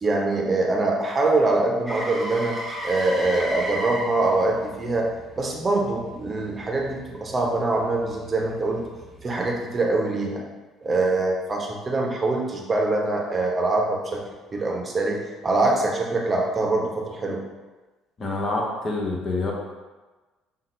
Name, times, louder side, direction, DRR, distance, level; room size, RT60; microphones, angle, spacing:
voice 1, 0.0-2.6 2.8-5.1 5.4-8.8 9.2-10.4 10.8-14.2 14.5-17.4, right 2 dB, 30° right, 0 dB, 0.8 m, -24 dB
Motor vehicle (road), 1.9-9.8 14.1-14.2, right 1 dB, ahead, 0.9 m, -36 dB
voice 2, 18.2-19.5, left 2 dB, 40° left, -1 dB, 0.9 m, -26 dB
5.6 x 2.1 x 3.2 m, 1.2 s
hypercardioid pair, 55°, 0 cm